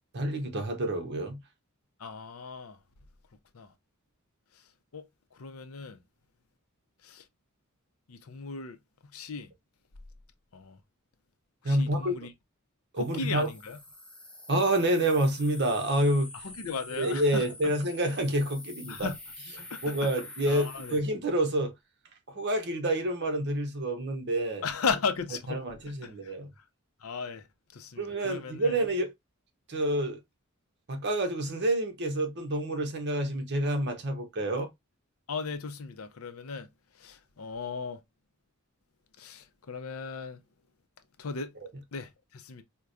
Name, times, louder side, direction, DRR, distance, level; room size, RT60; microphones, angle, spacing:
voice 1, 0.1-1.4 11.6-12.1 12.9-13.5 14.5-16.3 17.0-19.1 19.6-21.7 22.3-24.6 25.5-26.5 28.0-29.1 29.7-30.2 30.9-34.7 41.6-41.7, right 1 dB, 55° right, 0.9 m, -28 dB
voice 2, 2.0-2.8 3.5-3.7 4.9-5.0 5.3-6.0 7.0-7.2 8.1-8.8 9.1-9.5 10.5-10.8 11.6-12.3 13.0-13.8 16.4-17.4 18.9-19.2 19.6-20.1 20.5-21.0 24.6-25.6 26.0-26.3 27.0-27.4 27.7-28.8 35.3-36.7 37.0-38.0 39.2-40.4 41.2-41.5 41.9-42.6, left 5 dB, 80° left, 0.6 m, -36 dB
sound 1, 13.0-21.0, left 2 dB, 5° left, 0.7 m, -46 dB
4.6 x 2.2 x 2.5 m
head